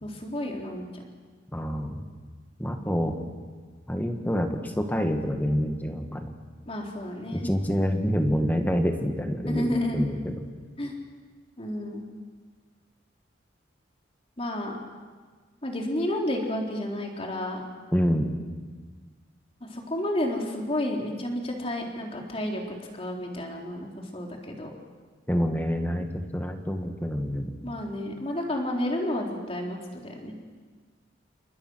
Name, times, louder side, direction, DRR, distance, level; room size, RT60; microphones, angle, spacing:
voice 1, 0.0-1.0 6.7-7.5 9.5-10.0 10.8-10.9 11.6-12.0 14.4-14.8 15.6-17.6 19.7-22.6 23.0-24.7 27.6-30.3, left 1 dB, 30° left, 0 dB, 3.7 m, -31 dB
voice 2, 1.5-2.0 2.6-3.2 3.9-6.3 7.3-10.3 17.9-18.3 25.3-27.5, equal, 10° left, 4 dB, 2.0 m, -27 dB
29.5 x 25.5 x 6.4 m, 1.5 s
head